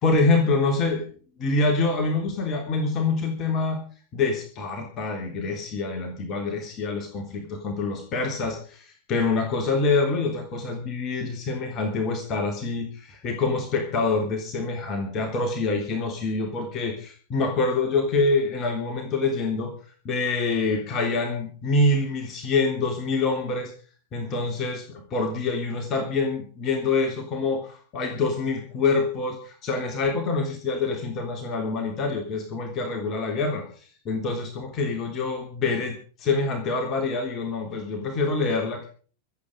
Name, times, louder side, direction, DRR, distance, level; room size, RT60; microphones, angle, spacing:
voice 1, 0.0-1.1 1.4-3.8 4.1-19.7 20.0-23.7 24.1-33.7 34.0-38.9, left 3 dB, 35° left, 4 dB, 3.3 m, -26 dB
25.0 x 8.6 x 5.2 m, 0.41 s
figure-of-eight pair, 90°, 0 cm